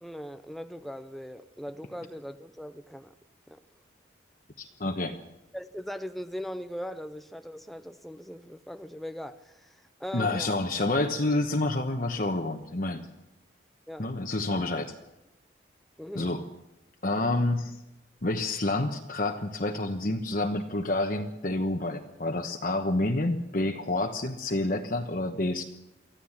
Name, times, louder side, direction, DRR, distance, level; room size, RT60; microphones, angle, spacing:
voice 1, 0.0-3.1 3.5-3.6 5.5-10.6 13.9-14.1 16.0-16.3, equal, ahead, 0.6 m, -40 dB
voice 2, 4.6-5.2 10.1-13.1 14.0-14.9 16.1-16.4 17.0-17.8 18.2-25.6, left 2 dB, 45° left, 1.2 m, -28 dB
24.5 x 15.0 x 7.4 m
head